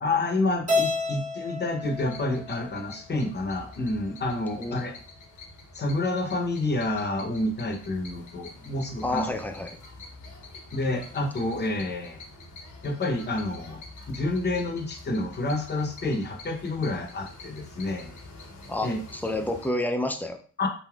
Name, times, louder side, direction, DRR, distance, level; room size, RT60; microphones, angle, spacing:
voice 1, 0.0-4.9 5.7-9.2 10.7-12.2 12.8-13.8 14.1-18.1 18.8-19.0 20.6-20.7, left 2 dB, 35° left, 3 dB, 0.7 m, -29 dB
Keyboard (musical), 0.7-3.0, left 3 dB, 25° right, 1.2 m, -30 dB
sound 1, 1.8-19.7, left 2 dB, 75° left, 0.8 m, -46 dB
voice 2, 9.0-9.8 18.7-20.4, left 1 dB, 5° left, 4 dB, 0.3 m, -29 dB
3.5 x 2.5 x 2.3 m, 0.42 s
cardioid pair, 110°, 31 cm